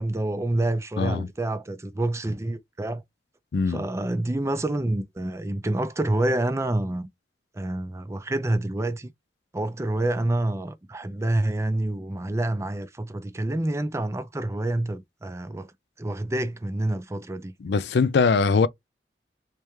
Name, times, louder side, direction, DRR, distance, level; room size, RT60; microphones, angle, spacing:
voice 1, 0.0-3.0 3.7-7.1 7.5-9.1 9.5-15.7 16.0-17.5, right 1 dB, 15° right, 0.4 m, -27 dB
voice 2, 1.0-1.3 3.5-3.8 17.6-18.7, left 4 dB, 70° left, 0.4 m, -21 dB
3.3 x 3.3 x 3.1 m
head